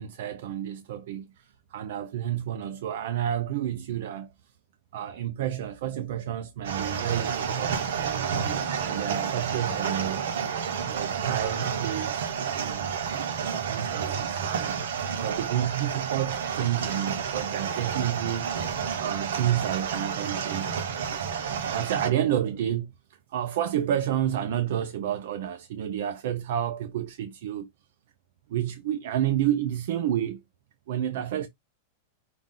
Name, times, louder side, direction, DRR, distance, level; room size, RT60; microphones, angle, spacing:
voice 1, 0.0-4.3 4.9-8.3 8.8-10.3 10.9-12.9 13.3-14.8 15.1-18.5 19.0-20.8 21.6-22.9 23.3-27.7 28.5-30.4 30.9-31.5, right 11 dB, 60° right, 0.6 m, -30 dB
sound 1, 6.6-22.1, right 7 dB, 80° right, 1.0 m, -30 dB
5.8 x 2.4 x 3.8 m
supercardioid pair, 165°, 0 cm